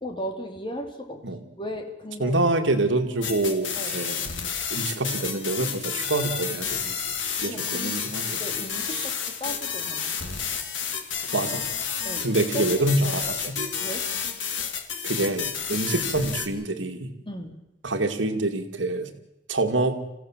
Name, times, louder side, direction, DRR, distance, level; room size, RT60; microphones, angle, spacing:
voice 1, 0.0-1.2 1.6-2.4 3.8-4.1 7.5-10.1 12.0-12.9 13.2-13.3 13.8-14.1 17.3-17.6, equal, 25° left, 4 dB, 2.6 m, -36 dB
voice 2, 2.2-4.2 4.7-7.1 7.4-8.4 8.9-9.0 11.3-11.7 12.2-13.6 15.0-17.1 17.8-19.1 19.5-19.9, right 2 dB, 85° right, 7 dB, 2.2 m, -26 dB
sound 1, 3.2-16.5, left 7 dB, 80° left, 2.4 m, -30 dB
27.5 x 16.0 x 7.4 m, 0.92 s
head